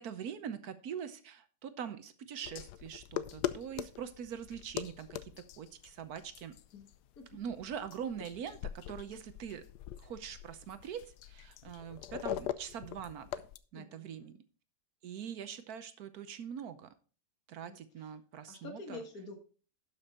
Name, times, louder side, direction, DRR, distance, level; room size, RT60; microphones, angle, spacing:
voice 1, 0.0-6.6 7.3-9.6 10.0-13.4 13.7-14.4 15.0-16.9 17.5-19.0, right 8 dB, 65° right, 12 dB, 1.2 m, -43 dB
sound 1, 2.4-13.6, left 12 dB, 80° left, 1.2 m, -42 dB
voice 2, 13.7-14.3 17.6-17.8 18.5-19.4, left 3 dB, 60° left, 5 dB, 2.2 m, -47 dB
12.0 x 6.2 x 4.2 m, 0.38 s
omnidirectional pair, 1.8 m